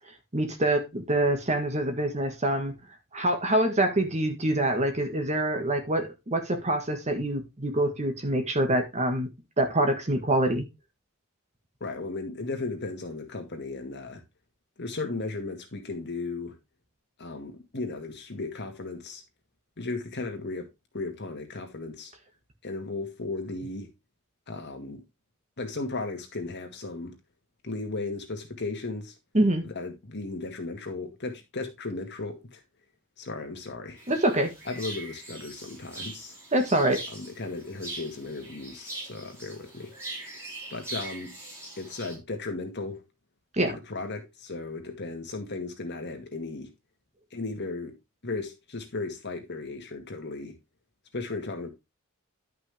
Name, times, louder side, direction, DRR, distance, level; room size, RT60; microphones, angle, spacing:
voice 1, 0.3-2.7 3.1-9.3 9.6-10.7 29.3-29.6 34.1-34.5 36.5-37.0 43.6-43.7, right 1 dB, 30° right, 1.7 m, -25 dB
voice 2, 11.8-14.2 14.8-16.6 17.2-19.2 19.8-20.7 20.9-22.1 22.6-23.9 24.5-25.0 25.6-27.2 27.6-29.1 29.6-32.6 33.2-34.0 34.7-36.4 37.1-39.9 40.7-41.3 41.8-43.0 43.7-46.7 47.3-48.0 48.2-50.6 51.1-51.7, left 3 dB, 50° left, 2.1 m, -35 dB
sound 1, 34.0-42.2, right 2 dB, 15° right, 6.2 m, -42 dB
11.5 x 5.8 x 3.4 m
head